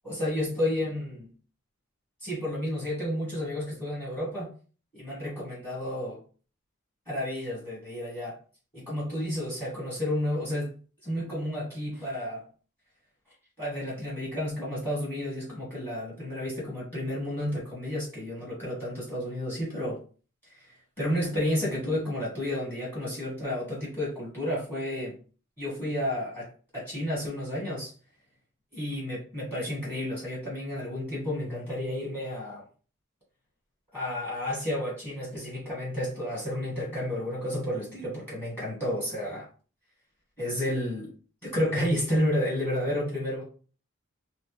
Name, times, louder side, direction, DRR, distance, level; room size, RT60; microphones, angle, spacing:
voice 1, 0.0-1.3 2.2-4.5 4.9-6.2 7.1-8.4 8.7-10.7 11.0-12.4 13.6-20.0 20.5-20.6 21.0-25.2 25.6-27.9 28.7-32.6 33.9-39.5 40.4-41.1 41.4-43.4, left 1 dB, 10° left, 1.1 m, -31 dB
2.2 x 2.0 x 2.9 m
head